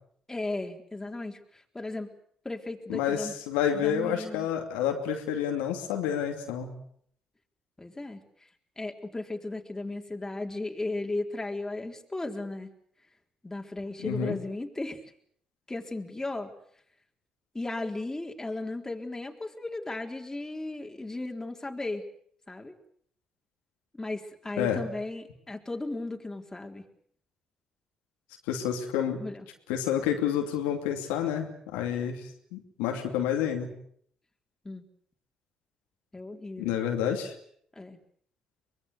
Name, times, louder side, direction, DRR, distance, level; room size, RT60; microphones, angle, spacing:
voice 1, 0.3-2.1 2.4-3.3 3.7-4.5 7.8-8.2 8.8-12.7 13.4-15.0 15.7-16.5 17.5-22.1 22.5-22.7 23.9-26.9 29.2-29.5 34.6-34.8 36.1-36.8 37.8-38.0, left 2 dB, 20° left, 3 dB, 4.0 m, -35 dB
voice 2, 2.9-6.7 14.0-14.4 24.6-24.8 28.5-29.2 29.7-33.7 36.6-37.3, left 9 dB, 85° left, 3 dB, 2.7 m, -29 dB
24.0 x 21.5 x 8.1 m, 0.64 s
hypercardioid pair, 50°, 3 cm